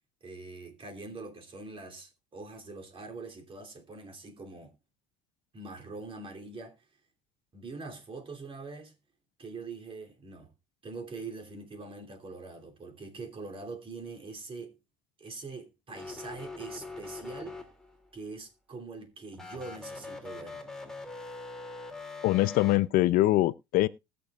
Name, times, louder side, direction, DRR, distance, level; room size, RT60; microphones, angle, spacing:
voice 1, 0.2-4.7 5.5-6.8 7.5-8.9 9.4-10.5 10.8-14.8 15.2-17.6 18.1-20.6, right 3 dB, 35° right, 2.9 m, -43 dB
sound 1, 15.9-18.1 19.3-22.8, left 3 dB, 5° left, 2.5 m, -43 dB
voice 2, 22.2-23.9, left 16 dB, 65° left, 0.6 m, -23 dB
20.5 x 6.9 x 2.4 m
supercardioid pair, 80°, 16 cm